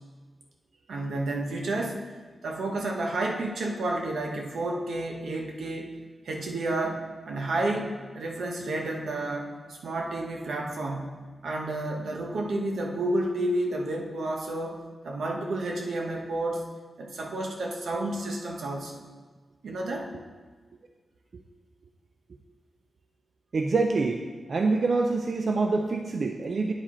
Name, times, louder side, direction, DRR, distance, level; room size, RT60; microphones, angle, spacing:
voice 1, 0.9-2.0 2.4-5.9 6.2-11.1 11.4-14.8 15.0-16.6 17.0-19.0 19.6-20.1, right 2 dB, 85° right, 0 dB, 1.0 m, -31 dB
voice 2, 23.5-24.2 24.5-26.7, right 3 dB, 50° right, 3 dB, 0.4 m, -25 dB
8.9 x 4.9 x 4.3 m, 1.4 s
wide cardioid pair, 130°, 0 cm